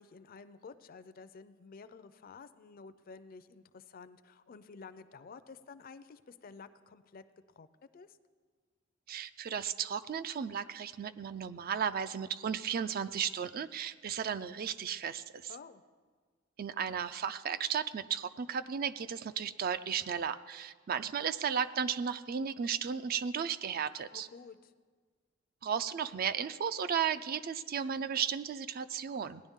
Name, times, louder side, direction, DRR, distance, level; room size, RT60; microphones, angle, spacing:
voice 1, 0.0-7.2 7.6-7.7 7.9-8.2 15.5-15.8 24.1-24.7, left 5 dB, 45° left, 12 dB, 0.5 m, -51 dB
voice 2, 9.1-15.5 16.6-24.3 25.6-29.4, right 7 dB, 50° right, 13 dB, 0.4 m, -34 dB
17.5 x 10.5 x 3.6 m, 1.5 s
head